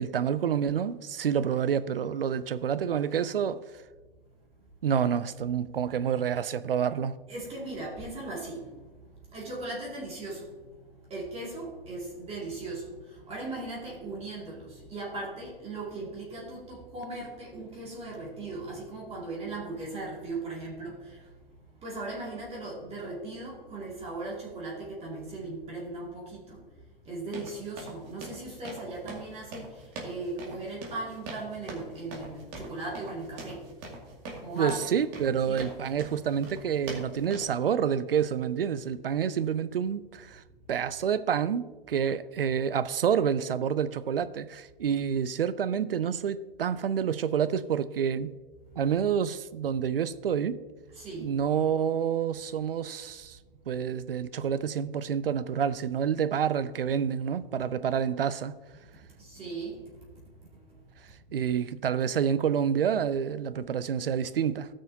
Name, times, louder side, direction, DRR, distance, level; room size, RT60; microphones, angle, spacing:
voice 1, 0.0-3.6 4.8-7.1 34.6-40.4 40.7-48.3 48.8-50.6 51.2-53.4 53.7-58.6 61.3-64.7, right 8 dB, 75° right, 0.6 m, -28 dB
voice 2, 7.3-21.3 21.8-33.7 34.1-34.2 34.4-34.8 35.5-35.7 48.6-48.8 50.9-51.4 58.9-60.9, right 2 dB, 20° right, 2.4 m, -38 dB
sound 1, 27.3-37.4, right 2 dB, 35° right, 2.3 m, -43 dB
17.5 x 6.2 x 2.8 m
figure-of-eight pair, 105°, 29 cm